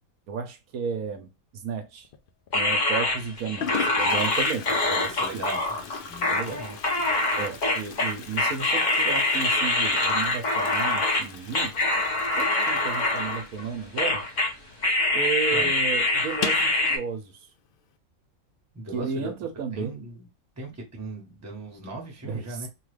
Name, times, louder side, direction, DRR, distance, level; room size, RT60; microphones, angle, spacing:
voice 1, 0.3-2.1 2.5-5.4 6.3-6.6 7.4-11.7 12.4-14.2 15.1-17.5 18.9-20.0 22.2-22.7, right 6 dB, 80° right, 1.1 m, -33 dB
Toilet flush, 2.0-2.5 3.2-3.3 3.6-14.9 15.1-15.2 15.5-15.6 16.3-16.8, left 7 dB, 85° left, 0.4 m, -39 dB
sound 1, 2.5-11.2 11.5-13.7 14.0-14.5 14.8-17.0, left 2 dB, 40° left, 0.8 m, -24 dB
voice 2, 5.2-5.6 5.9-6.7 15.5-15.7 18.7-19.3 19.7-20.3 20.6-22.7, right 2 dB, 15° right, 0.8 m, -38 dB
2.9 x 2.4 x 3.2 m
omnidirectional pair, 1.5 m